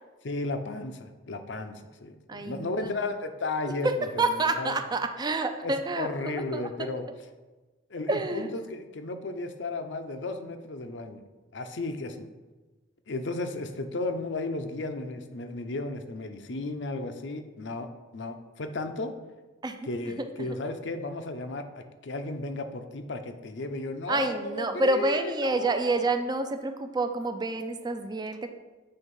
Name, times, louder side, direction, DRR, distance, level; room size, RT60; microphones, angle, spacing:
voice 1, 0.2-1.7 2.0-4.3 4.6-4.8 5.6-7.0 7.9-11.2 11.5-12.3 13.1-17.9 18.1-19.1 19.9-26.0, left 2 dB, 70° left, 7 dB, 0.7 m, -34 dB
voice 2, 2.3-2.9 3.8-6.6 8.1-8.5 19.6-19.8 20.5-20.6 24.1-28.5, right 2 dB, 20° right, 7 dB, 0.4 m, -28 dB
7.8 x 3.5 x 5.4 m, 1.2 s
head